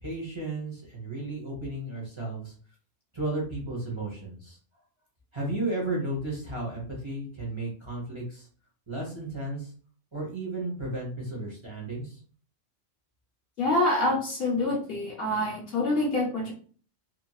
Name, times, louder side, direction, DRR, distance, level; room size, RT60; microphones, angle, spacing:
voice 1, 0.0-2.5 3.1-4.6 5.3-8.5 8.9-9.7 10.1-12.2, right 2 dB, 25° right, -4 dB, 0.9 m, -34 dB
voice 2, 13.6-16.5, left 2 dB, 55° left, -2 dB, 1.0 m, -26 dB
2.9 x 2.7 x 2.3 m, 0.42 s
omnidirectional pair, 1.3 m